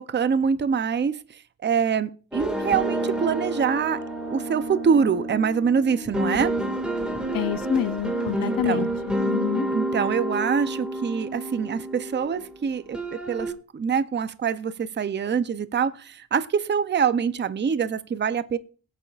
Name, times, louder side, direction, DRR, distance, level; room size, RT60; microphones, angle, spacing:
voice 1, 0.0-6.6 8.4-8.9 9.7-18.6, right 6 dB, 30° right, 0.5 m, -25 dB
sound 1, 2.3-12.6 12.9-13.5, right 1 dB, 5° right, 1.9 m, -29 dB
voice 2, 7.3-9.7, left 11 dB, 70° left, 0.6 m, -27 dB
21.5 x 8.5 x 2.4 m
wide cardioid pair, 135°, 35 cm